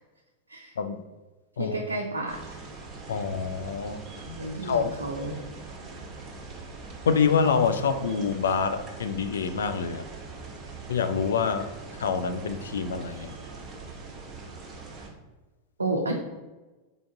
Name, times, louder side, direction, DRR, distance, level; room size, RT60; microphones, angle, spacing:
voice 1, 1.6-2.5 4.3-5.4 15.8-16.1, right 2 dB, 80° right, 0 dB, 0.5 m, -31 dB
sound 1, 2.3-15.1, right 3 dB, 20° right, 1.0 m, -42 dB
voice 2, 3.1-4.0 4.6-4.9 7.1-10.1 10.9-11.7 12.0-13.3, left 6 dB, 65° left, 9 dB, 0.3 m, -26 dB
3.7 x 3.4 x 3.6 m, 1.2 s
figure-of-eight pair, 90°, 0 cm